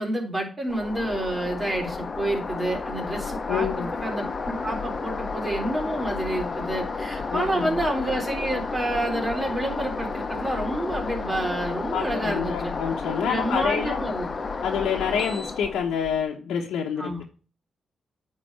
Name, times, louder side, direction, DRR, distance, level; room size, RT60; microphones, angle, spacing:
voice 1, 0.0-12.7 13.3-14.3 17.0-17.2, right 1 dB, 25° right, 3.8 m, -29 dB
sound 1, 0.7-16.2, left 4 dB, 45° left, 1.2 m, -32 dB
voice 2, 3.5-3.9 7.3-7.8 11.9-14.0 14.6-17.1, left 7 dB, 90° left, 1.1 m, -27 dB
8.9 x 4.2 x 6.9 m
cardioid pair, 60°, 0 cm